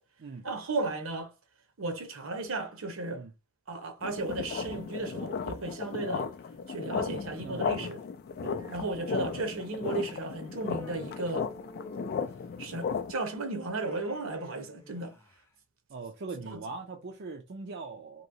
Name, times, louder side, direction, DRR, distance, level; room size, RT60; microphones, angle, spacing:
voice 1, 0.4-1.3 1.8-3.2 3.7-6.3 6.7-8.0 8.6-11.5 12.6-15.1 16.5-16.6, right 2 dB, 70° right, 0.8 m, -35 dB
sound 1, 4.0-13.1, left 6 dB, 50° left, 0.3 m, -35 dB
voice 2, 7.4-8.0 8.4-8.6 15.9-18.3, right 3 dB, 55° right, 0.5 m, -41 dB
Human voice, 10.5-12.7 13.6-15.5, right 1 dB, 10° left, 0.6 m, -50 dB
3.0 x 2.7 x 2.7 m
head